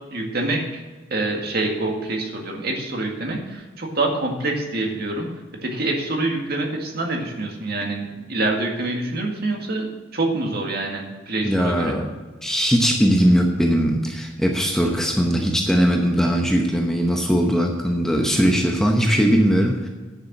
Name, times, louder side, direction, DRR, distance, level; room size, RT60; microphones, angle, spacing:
voice 1, 0.1-0.8 1.1-5.3 5.6-11.9, right 2 dB, 50° right, 1 dB, 1.9 m, -26 dB
voice 2, 11.4-12.1 12.4-19.9, equal, 5° left, 1 dB, 0.9 m, -19 dB
9.9 x 6.8 x 7.3 m, 1.3 s
head